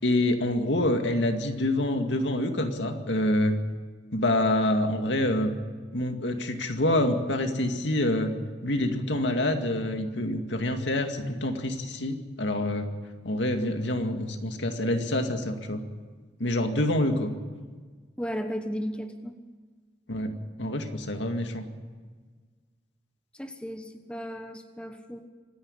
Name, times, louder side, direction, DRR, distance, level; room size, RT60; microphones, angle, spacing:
voice 1, 0.0-3.6 4.1-5.5 5.9-8.3 8.6-12.9 13.2-15.8 16.4-17.3 20.1-21.6, left 1 dB, 80° left, 5 dB, 2.2 m, -26 dB
voice 2, 18.2-19.4 23.3-25.3, equal, 5° left, 6 dB, 1.1 m, -35 dB
25.5 x 10.5 x 9.9 m, 1.5 s
head